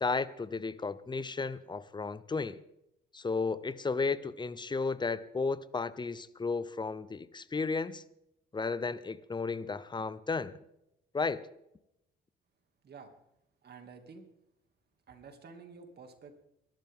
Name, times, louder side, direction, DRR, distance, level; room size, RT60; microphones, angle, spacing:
voice 1, 0.0-2.6 3.1-8.0 8.5-10.6 11.1-11.4, left 4 dB, 20° left, 17 dB, 0.7 m, -33 dB
voice 2, 13.6-14.3 15.1-16.4, right 5 dB, 55° right, 5 dB, 2.5 m, -50 dB
22.0 x 12.5 x 3.7 m, 0.82 s
cardioid pair, 90°, 20 cm